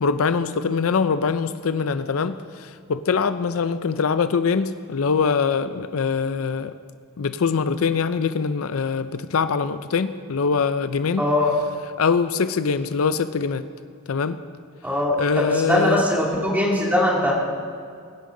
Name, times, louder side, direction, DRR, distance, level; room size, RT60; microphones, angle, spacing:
voice 1, 0.0-6.7 7.2-11.2 12.0-13.6 14.1-14.4 15.2-16.0, left 5 dB, 75° left, 12 dB, 0.5 m, -23 dB
voice 2, 11.2-11.5 14.8-17.3, left 1 dB, 10° right, -3 dB, 2.5 m, -21 dB
22.5 x 10.5 x 3.8 m, 2.2 s
head